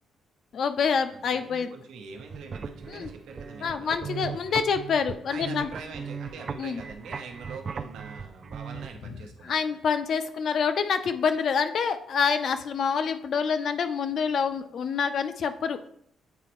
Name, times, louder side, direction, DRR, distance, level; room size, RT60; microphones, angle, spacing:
voice 1, 0.5-1.7 2.9-3.1 3.6-5.7 6.6-6.8 9.4-15.8, left 6 dB, 60° left, 9 dB, 0.5 m, -27 dB
voice 2, 1.1-4.0 5.3-9.5, right 5 dB, 80° right, 3 dB, 0.9 m, -43 dB
sound 1, 2.1-8.9, right 6 dB, 40° right, 0.3 m, -38 dB
8.1 x 4.2 x 3.1 m, 0.67 s
cardioid pair, 90°, 0 cm